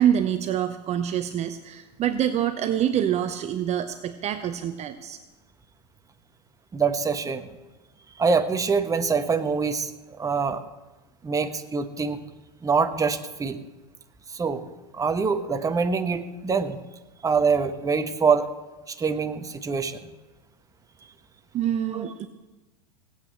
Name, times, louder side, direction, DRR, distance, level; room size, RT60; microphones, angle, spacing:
voice 1, 0.0-5.2 21.5-22.3, right 10 dB, 35° right, 9 dB, 0.9 m, -26 dB
voice 2, 6.7-7.5 8.2-9.9 10.2-10.6 11.2-12.2 12.6-13.6 14.3-14.6 14.9-16.8 17.2-18.5 18.9-20.0 21.9-22.1, right 5 dB, 15° right, 8 dB, 1.1 m, -24 dB
18.0 x 8.4 x 7.8 m, 1.1 s
hypercardioid pair, 95°, 20 cm